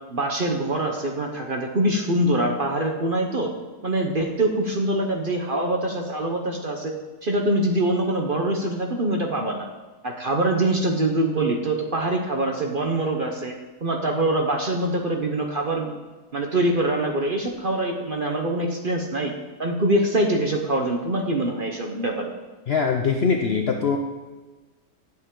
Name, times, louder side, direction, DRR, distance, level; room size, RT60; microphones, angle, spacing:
voice 1, 0.1-3.5 3.8-6.9 7.2-9.7 10.0-13.6 13.8-15.9 16.3-19.3 19.6-22.3, right 1 dB, 40° right, 2 dB, 0.9 m, -24 dB
voice 2, 22.7-24.0, left 5 dB, 55° left, 3 dB, 0.7 m, -22 dB
11.0 x 7.7 x 3.8 m, 1.3 s
omnidirectional pair, 1.7 m